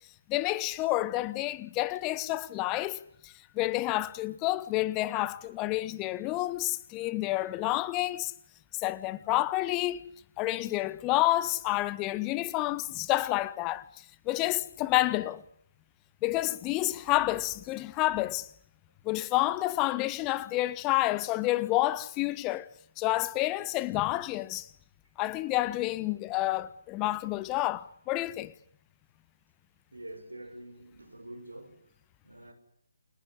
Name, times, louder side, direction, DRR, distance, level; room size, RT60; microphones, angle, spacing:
voice 1, 0.3-8.3 8.8-10.0 10.4-15.4 16.2-18.5 19.0-22.7 23.0-24.7 25.2-28.5, left 17 dB, 20° left, 1.0 m, -29 dB
voice 2, 29.9-31.8 32.2-32.5, right 1 dB, 80° right, 6.3 m, -46 dB
29.0 x 16.5 x 10.0 m
figure-of-eight pair, 145°, 0 cm